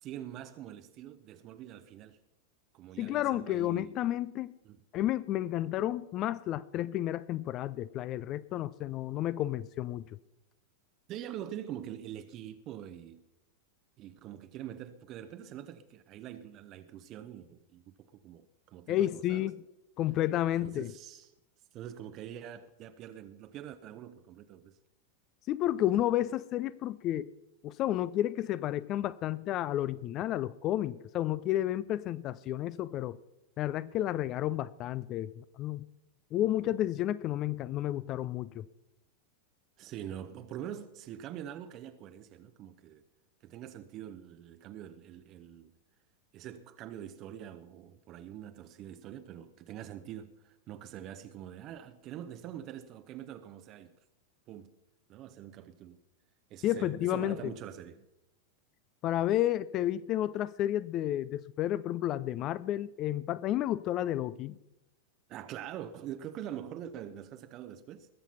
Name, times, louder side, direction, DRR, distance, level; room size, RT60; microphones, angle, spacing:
voice 1, 0.0-2.2 2.7-3.9 4.6-4.8 11.1-13.2 14.0-19.5 20.6-21.3 21.7-24.8 39.8-43.0 43.4-45.7 46.3-54.0 54.5-54.7 55.1-56.0 56.5-58.1 65.3-68.1, right 10 dB, 35° right, 0.7 m, -44 dB
voice 2, 3.0-4.5 4.9-10.0 18.9-19.6 20.0-20.9 25.5-27.3 27.6-33.2 33.6-35.9 36.3-38.6 56.6-57.5 59.0-64.5, left 13 dB, 35° left, 0.4 m, -31 dB
20.5 x 7.3 x 5.6 m
figure-of-eight pair, 90°, 0 cm